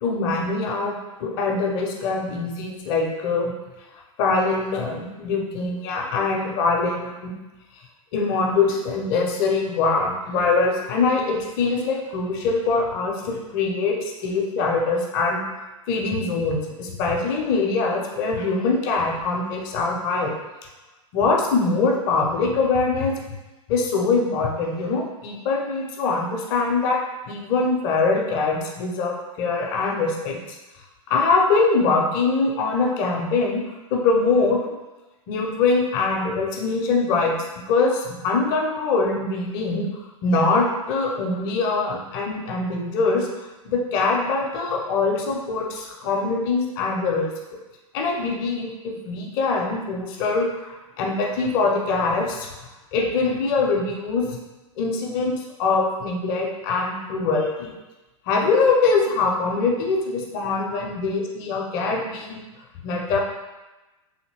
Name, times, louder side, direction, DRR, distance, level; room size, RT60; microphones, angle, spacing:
voice 1, 0.0-3.5 4.2-7.3 8.1-15.4 15.9-20.3 21.1-23.2 23.7-30.4 31.1-33.6 33.9-34.6 35.3-37.4 37.7-39.9 40.2-43.3 43.6-47.3 47.9-52.5 52.9-54.3 54.8-57.7 58.3-62.4 62.8-63.2, left 3 dB, 40° left, 1 dB, 0.6 m, -23 dB
2.8 x 2.6 x 2.9 m, 1.1 s
figure-of-eight pair, 100°, 18 cm